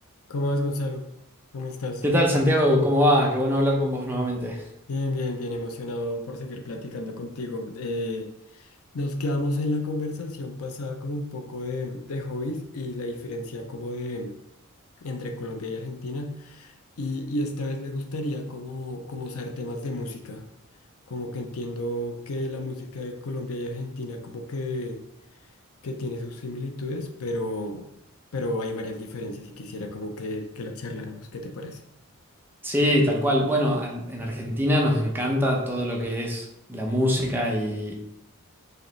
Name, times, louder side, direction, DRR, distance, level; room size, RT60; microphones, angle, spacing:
voice 1, 0.3-1.1 1.5-2.0 4.9-14.3 15.0-20.4 21.1-25.0 25.8-27.9 28.3-31.8, left 1 dB, 75° left, 5 dB, 0.6 m, -32 dB
voice 2, 2.0-4.6 32.6-37.9, equal, 10° right, -1 dB, 0.7 m, -23 dB
4.8 x 3.1 x 3.2 m, 0.84 s
head